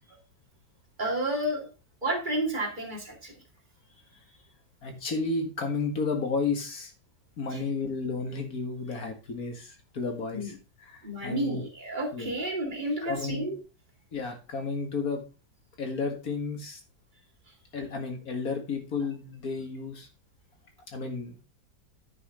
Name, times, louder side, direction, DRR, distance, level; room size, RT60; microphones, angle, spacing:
voice 1, 1.0-1.7 2.0-3.4 4.1-4.2 7.5-7.6 10.3-10.5 11.0-13.6, right 1 dB, 25° right, 0 dB, 2.4 m, -31 dB
voice 2, 4.8-6.9 7.4-10.5 10.9-11.6 12.1-12.3 13.0-13.5 14.1-15.2 15.8-16.8 17.7-20.1 20.9-21.3, left 4 dB, 55° left, 4 dB, 2.2 m, -32 dB
9.9 x 5.6 x 3.9 m, 0.32 s
omnidirectional pair, 1.9 m